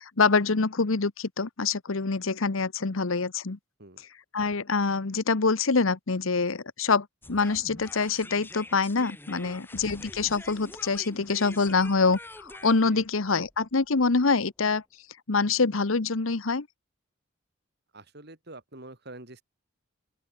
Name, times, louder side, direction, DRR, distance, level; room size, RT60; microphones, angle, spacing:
voice 1, 0.0-3.6 4.3-14.8 15.3-16.7, left 4 dB, 80° left, 1.1 m, -25 dB
sound 1, 7.2-14.3, left 2 dB, 10° left, 2.3 m, -46 dB
voice 2, 17.9-19.4, right 2 dB, 55° right, 3.5 m, -46 dB
open air
head